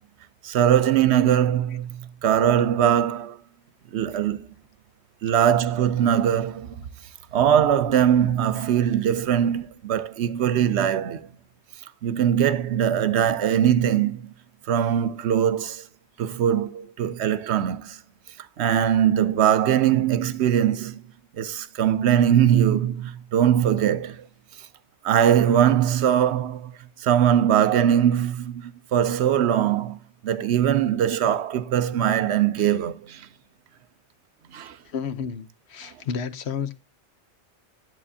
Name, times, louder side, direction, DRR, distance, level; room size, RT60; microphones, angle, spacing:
voice 1, 0.4-3.4 3.9-4.5 5.2-6.8 7.3-11.3 12.0-14.3 14.7-15.8 16.2-18.0 18.6-21.0 21.4-24.2 25.0-26.7 27.0-33.3 34.5-34.8, right 10 dB, 75° right, 1.0 m, -21 dB
voice 2, 34.9-36.7, left 6 dB, 75° left, 1.0 m, -31 dB
11.0 x 7.9 x 2.7 m
omnidirectional pair, 1.2 m